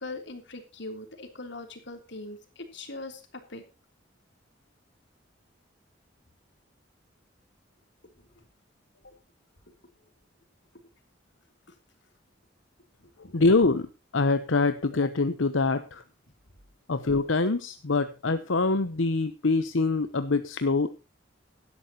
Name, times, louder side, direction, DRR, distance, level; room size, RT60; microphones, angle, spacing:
voice 1, 0.0-3.2 3.5-3.6 8.2-8.3 9.0-9.1 13.0-13.6, left 2 dB, 65° left, 5 dB, 3.3 m, -41 dB
voice 2, 13.3-13.9 14.1-16.0 16.9-20.9, left 3 dB, 85° left, 10 dB, 0.9 m, -24 dB
17.5 x 12.5 x 3.0 m, 0.31 s
head